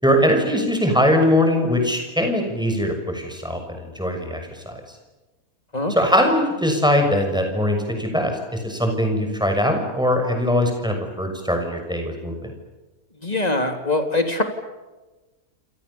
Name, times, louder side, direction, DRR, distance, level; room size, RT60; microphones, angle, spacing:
voice 1, 0.0-4.8 5.9-12.5, equal, 5° right, 4 dB, 6.6 m, -21 dB
voice 2, 13.2-14.4, left 2 dB, 25° left, 6 dB, 3.5 m, -22 dB
28.5 x 27.5 x 7.2 m, 1.1 s
omnidirectional pair, 1.6 m